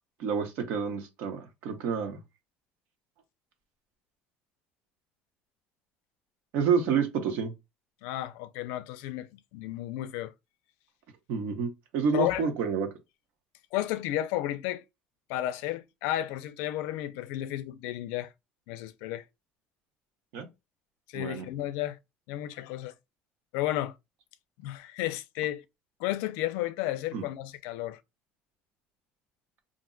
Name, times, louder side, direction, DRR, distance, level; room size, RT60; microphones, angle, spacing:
voice 1, 0.2-2.2 6.5-7.5 11.3-12.9 20.3-20.5 21.1-21.5 27.1-27.2, right 6 dB, 65° right, 0.9 m, -29 dB
voice 2, 8.0-10.3 12.1-12.4 13.7-14.8 15.3-18.3 18.7-19.2 21.1-22.0 22.3-22.9 23.5-24.0 24.6-25.6 26.0-28.0, left 14 dB, 85° left, 0.4 m, -32 dB
2.6 x 2.2 x 3.7 m
cardioid pair, 170°, 4 cm